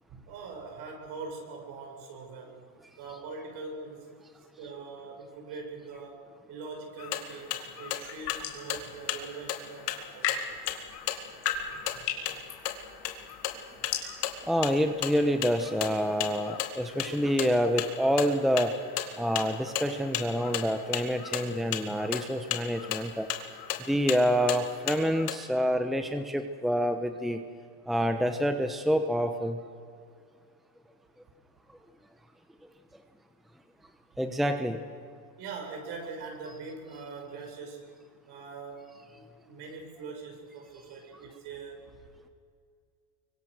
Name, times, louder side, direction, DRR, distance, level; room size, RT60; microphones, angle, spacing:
voice 1, 0.1-2.7 3.0-4.2 4.6-10.5 35.4-37.9 38.3-41.8, right 4 dB, 55° right, 2 dB, 7.1 m, -42 dB
sound 1, 7.0-25.4, left 10 dB, 90° left, 2.3 m, -36 dB
sound 2, 7.9-8.7 9.8-17.5, left 8 dB, 60° left, 4.6 m, -38 dB
voice 2, 14.4-18.8 19.2-23.3 23.9-27.4 27.9-29.6 34.2-34.8, equal, ahead, 7 dB, 1.0 m, -27 dB
24.5 x 24.0 x 6.6 m, 2.3 s
supercardioid pair, 110°, 46 cm